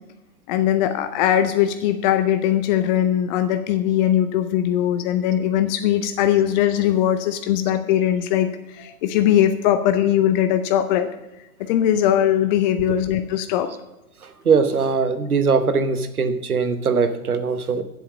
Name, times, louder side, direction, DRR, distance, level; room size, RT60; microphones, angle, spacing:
voice 1, 0.5-11.1 11.6-13.7, left 11 dB, 35° left, 9 dB, 0.6 m, -20 dB
voice 2, 14.2-17.8, right 5 dB, 85° right, 10 dB, 1.1 m, -21 dB
7.8 x 7.7 x 7.2 m, 0.96 s
figure-of-eight pair, 105°, 43 cm